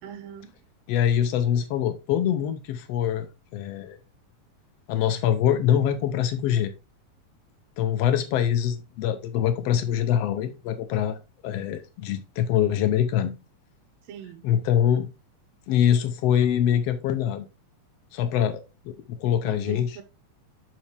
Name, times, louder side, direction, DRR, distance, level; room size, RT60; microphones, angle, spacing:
voice 1, 0.0-0.5 14.1-14.4 19.5-20.0, right 8 dB, 85° right, 2.7 m, -41 dB
voice 2, 0.9-3.3 3.5-4.0 4.9-6.7 7.8-11.2 11.4-13.3 14.4-15.1 15.7-17.4 18.1-18.6 19.2-19.9, left 10 dB, 85° left, 1.4 m, -24 dB
7.4 x 5.5 x 3.3 m
omnidirectional pair, 3.9 m